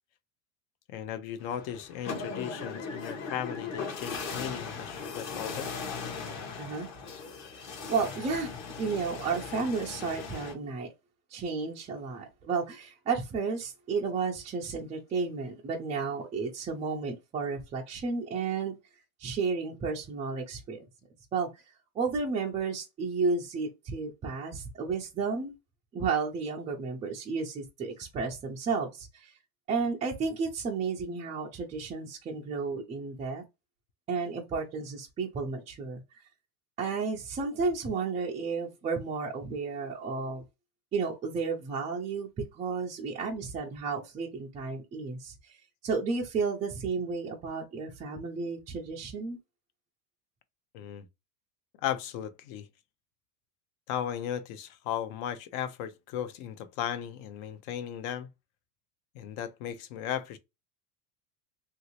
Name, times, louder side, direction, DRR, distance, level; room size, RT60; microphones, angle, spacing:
voice 1, 0.9-5.7 50.7-51.1 51.8-52.7 53.9-58.3 59.1-60.4, left 10 dB, 55° left, 0.8 m, -36 dB
sound 1, 1.4-10.5, left 5 dB, 35° left, 0.9 m, -38 dB
voice 2, 6.6-6.9 7.5-10.9 11.3-18.8 19.2-20.9 21.3-21.5 22.0-25.5 25.9-29.3 29.7-33.4 34.1-36.0 36.8-40.4 40.9-45.6 45.8-49.4, right 4 dB, 15° right, 0.3 m, -32 dB
3.0 x 2.7 x 2.8 m
supercardioid pair, 130°, 47 cm